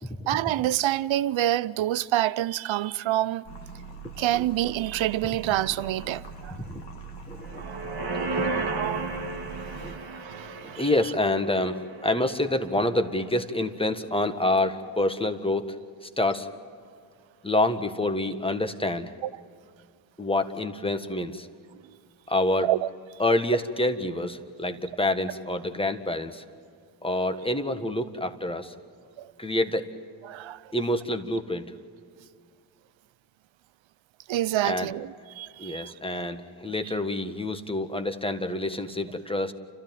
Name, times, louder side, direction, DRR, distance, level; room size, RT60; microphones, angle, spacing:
voice 1, 0.3-3.4 4.2-6.5 7.6-7.8 8.5-9.2 9.8-10.8 22.6-22.9 29.2-29.3 30.3-30.6 34.3-35.1 35.4-35.9, right 14 dB, 65° right, 0.6 m, -27 dB
sound 1, 3.5-9.9, right 4 dB, 55° left, 2.0 m, -42 dB
voice 2, 7.3-7.6 8.3-8.5 9.8-9.9 10.6-15.7 16.0-16.5 17.4-19.1 20.2-21.5 22.3-22.7 23.2-26.4 27.0-28.7 29.4-29.9 30.7-31.7 34.6-34.9 35.6-39.5, left 1 dB, 10° left, 1.6 m, -27 dB
sound 2, 7.4-12.8 13.1-13.2, right 3 dB, 50° right, 1.7 m, -34 dB
29.5 x 13.5 x 9.2 m
supercardioid pair, 45°, 50 cm